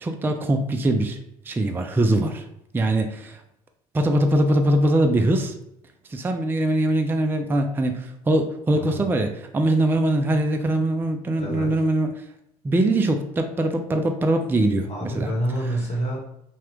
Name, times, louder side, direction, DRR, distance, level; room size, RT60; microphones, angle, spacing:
voice 1, 0.0-1.2 1.5-2.4 2.7-3.4 3.9-5.5 6.1-12.1 12.6-15.3, right 1 dB, 10° right, 5 dB, 0.3 m, -22 dB
voice 2, 11.4-11.7 14.9-16.2, right 1 dB, 35° left, -2 dB, 1.2 m, -27 dB
2.8 x 2.3 x 3.2 m, 0.80 s
hypercardioid pair, 60°, 20 cm